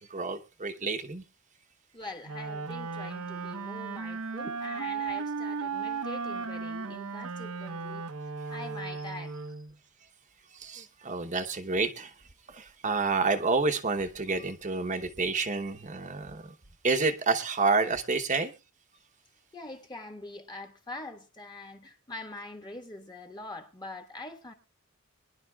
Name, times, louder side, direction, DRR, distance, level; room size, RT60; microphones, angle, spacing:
voice 1, 0.1-1.2 10.5-12.1 12.5-16.5 16.8-18.5, right 4 dB, 35° right, 0.9 m, -29 dB
voice 2, 1.9-9.5 19.5-24.5, left 2 dB, 20° left, 1.5 m, -44 dB
Wind instrument woodwind instrument, 2.2-9.7, right 4 dB, 85° right, 0.9 m, -36 dB
24.0 x 10.5 x 2.3 m
head